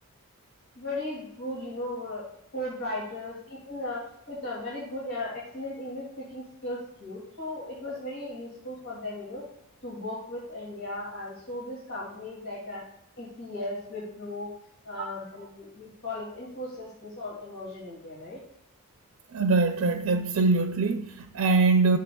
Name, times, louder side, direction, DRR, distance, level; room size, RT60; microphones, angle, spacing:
voice 1, 0.8-9.4 9.8-12.8 13.2-14.5 14.8-18.4, left 1 dB, 70° left, 2.4 m, -37 dB
voice 2, 19.3-22.0, right 3 dB, 70° right, 0.5 m, -23 dB
12.5 x 6.7 x 2.3 m
head